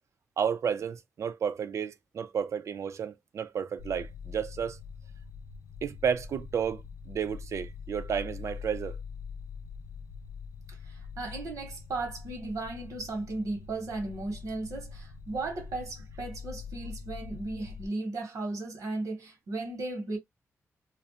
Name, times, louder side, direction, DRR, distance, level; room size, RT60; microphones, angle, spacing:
voice 1, 0.4-4.8 5.8-9.0, right 7 dB, 65° right, 0.4 m, -32 dB
sound 1, 3.8-17.9, left 5 dB, 75° left, 0.4 m, -44 dB
voice 2, 10.7-20.2, right 2 dB, 85° right, 1.1 m, -36 dB
2.4 x 2.1 x 2.7 m
wide cardioid pair, 120°, 6 cm